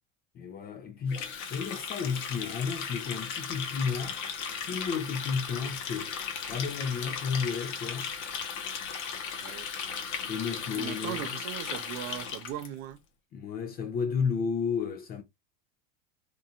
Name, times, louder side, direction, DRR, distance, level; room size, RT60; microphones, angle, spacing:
voice 1, 0.3-4.2 4.6-6.2 6.5-8.1 10.3-11.2 13.3-15.2, left 6 dB, 25° left, 0.4 m, -32 dB
Water tap faucet, 1.1-12.7, left 6 dB, 65° left, 0.9 m, -36 dB
voice 2, 9.4-9.7 10.7-13.0, right 11 dB, 45° right, 0.5 m, -38 dB
2.6 x 2.3 x 2.7 m
supercardioid pair, 115°, 38 cm